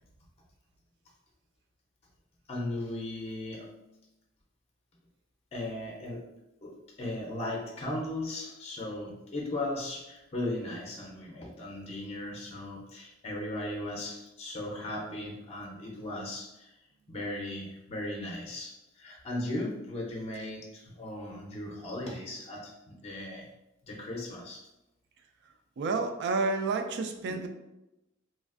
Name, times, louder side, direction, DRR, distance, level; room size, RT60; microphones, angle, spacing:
voice 1, 2.5-3.8 5.5-6.3 6.6-16.7 17.1-23.5 23.8-24.6 27.3-27.5, left 1 dB, 30° left, -2 dB, 0.5 m, -37 dB
voice 2, 25.8-27.5, right 3 dB, 55° right, 6 dB, 0.3 m, -30 dB
3.1 x 2.4 x 2.4 m, 0.93 s
head